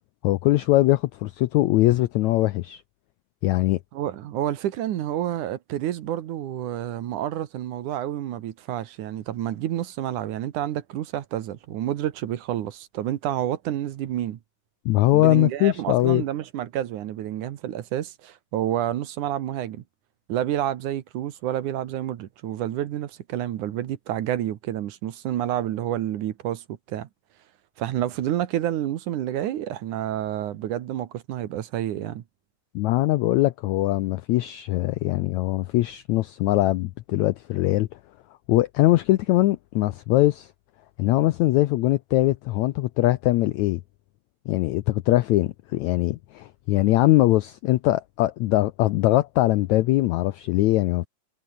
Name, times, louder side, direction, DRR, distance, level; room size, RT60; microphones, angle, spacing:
voice 1, 0.2-2.8 3.4-3.8 14.8-16.2 32.7-37.9 38.5-40.5 41.0-43.8 44.5-51.1, left 17 dB, 90° left, 1.6 m, -21 dB
voice 2, 3.9-14.4 15.1-19.8 20.3-27.1 27.8-32.2, right 12 dB, 65° right, 2.5 m, -29 dB
omnidirectional pair, 4.0 m